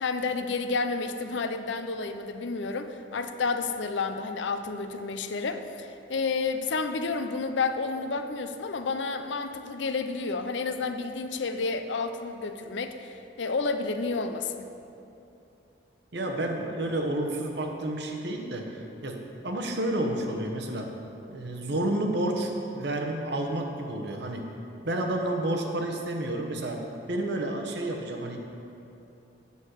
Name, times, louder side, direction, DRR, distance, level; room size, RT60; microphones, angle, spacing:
voice 1, 0.0-14.7, left 4 dB, 80° left, 8 dB, 0.6 m, -30 dB
voice 2, 16.1-20.9 21.3-24.5 24.8-28.4, right 1 dB, 65° right, 3 dB, 1.0 m, -30 dB
8.2 x 6.4 x 6.5 m, 2.8 s
head